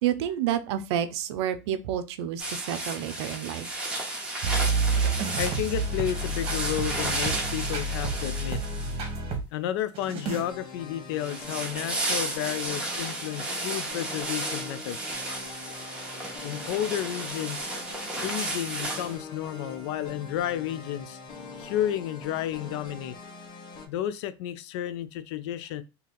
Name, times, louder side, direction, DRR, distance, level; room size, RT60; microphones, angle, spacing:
voice 1, 0.0-3.7, right 10 dB, 75° right, 0.5 m, -29 dB
sound 1, 2.4-9.2 11.2-19.2, right 2 dB, 5° right, 1.0 m, -33 dB
sound 2, 4.4-9.4 9.9-10.4, right 3 dB, 40° right, 1.1 m, -29 dB
voice 2, 5.4-8.6 9.5-15.2 16.4-17.7 18.2-21.2 21.6-23.2 23.9-25.8, left 11 dB, 75° left, 0.4 m, -32 dB
sound 3, 10.2-23.9, left 4 dB, 35° left, 0.8 m, -44 dB
2.8 x 2.5 x 3.7 m
supercardioid pair, 125°, 14 cm